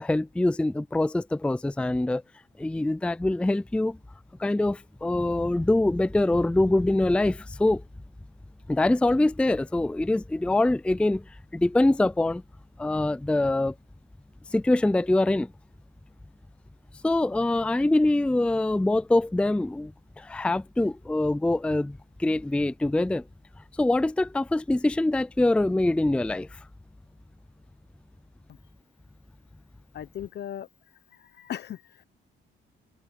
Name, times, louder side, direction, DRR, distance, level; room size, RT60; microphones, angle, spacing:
voice 1, 0.0-2.2 2.6-4.0 4.4-7.8 8.7-12.4 12.8-13.7 14.5-15.5 17.0-23.2 23.8-26.6, left 2 dB, 5° left, 0.4 m, -24 dB
voice 2, 29.9-30.7 31.1-32.0, left 10 dB, 60° left, 0.9 m, -38 dB
cardioid pair, 90°, 20 cm